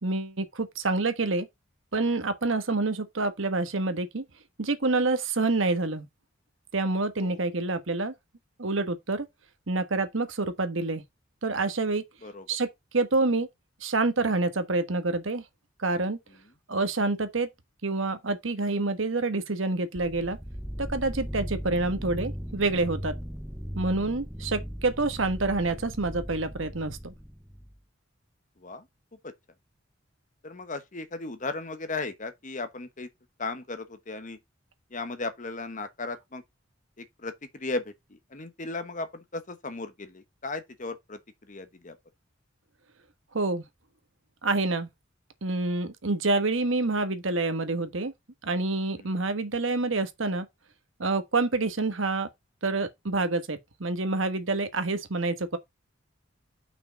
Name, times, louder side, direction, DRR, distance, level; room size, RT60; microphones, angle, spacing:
voice 1, 0.0-1.5 1.9-4.2 4.6-6.0 6.7-8.1 8.6-9.3 9.7-11.0 11.4-12.0 12.5-12.7 12.9-13.5 13.8-15.4 15.8-16.2 16.7-17.5 17.8-20.4 20.8-23.1 23.7-27.1 43.3-43.6 44.4-44.9 45.4-48.1 48.4-50.5 51.0-52.3 52.6-55.6, right 3 dB, 75° right, 1.3 m, -27 dB
sound 1, 20.0-27.8, equal, 5° right, 0.6 m, -38 dB
voice 2, 30.4-33.1 33.4-34.4 34.9-36.4 37.0-42.0 48.9-49.2, left 3 dB, 40° left, 1.1 m, -36 dB
5.8 x 4.9 x 5.1 m
head